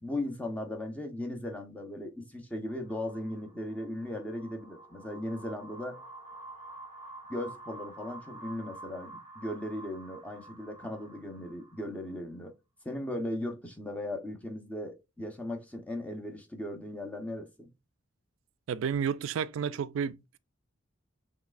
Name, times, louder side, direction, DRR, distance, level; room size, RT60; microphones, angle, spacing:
voice 1, 0.0-6.0 7.3-12.5 12.8-17.7, left 1 dB, 5° left, 0.8 m, -37 dB
sound 1, 2.7-12.1, right 2 dB, 20° right, 2.2 m, -49 dB
voice 2, 18.7-20.4, right 7 dB, 75° right, 0.3 m, -31 dB
5.9 x 3.1 x 2.4 m
head